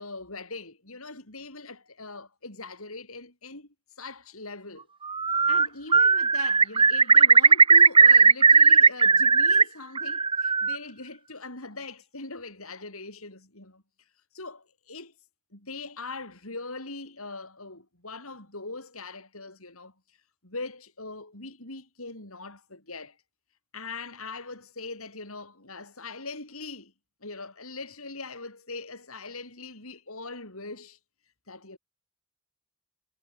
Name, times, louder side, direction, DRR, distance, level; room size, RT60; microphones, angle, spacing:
voice 1, 0.0-3.7 4.0-4.9 5.5-13.8 14.3-15.1 15.5-19.9 20.4-23.2 23.7-26.9 27.2-31.0 31.5-31.8, left 3 dB, 75° left, 7.9 m, -41 dB
Bird, 5.1-5.7 5.9-9.6 10.0-10.8, right 5 dB, 25° right, 0.9 m, -17 dB
head